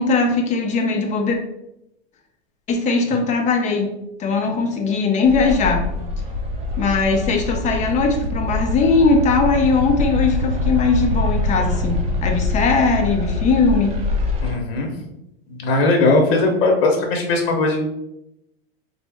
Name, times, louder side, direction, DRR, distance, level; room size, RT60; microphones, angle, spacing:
voice 1, 0.0-1.4 2.7-3.9 4.2-5.9 6.8-14.0, left 4 dB, 25° left, 3 dB, 0.6 m, -19 dB
sound 1, 5.2-14.6, left 2 dB, 20° right, 0.6 m, -24 dB
voice 2, 14.4-14.9 15.6-17.8, left 2 dB, 65° left, 2 dB, 0.9 m, -18 dB
4.2 x 2.0 x 3.4 m, 0.84 s
supercardioid pair, 130°, 30 cm